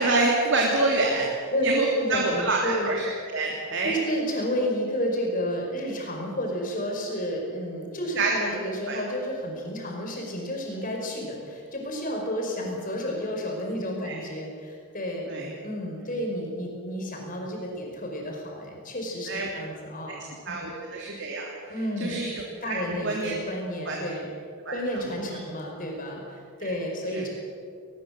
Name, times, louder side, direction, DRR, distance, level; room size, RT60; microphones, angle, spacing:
voice 1, 0.0-3.0 3.3-3.9 8.2-8.3 8.9-9.0 14.0-14.2 15.3-15.5 19.3-19.5 20.5-21.5 22.0-22.3 22.7-22.8 23.0-23.3 23.9-24.0 24.6-24.8 25.3-25.4 27.1-27.2, right 3 dB, 55° right, -2 dB, 3.1 m, -26 dB
voice 2, 1.9-3.0 3.8-15.3 15.6-20.2 20.6-20.7 21.7-22.2 22.6-24.3 24.7-27.3, equal, 40° left, 1 dB, 5.4 m, -31 dB
20.5 x 20.0 x 7.8 m, 2.2 s
head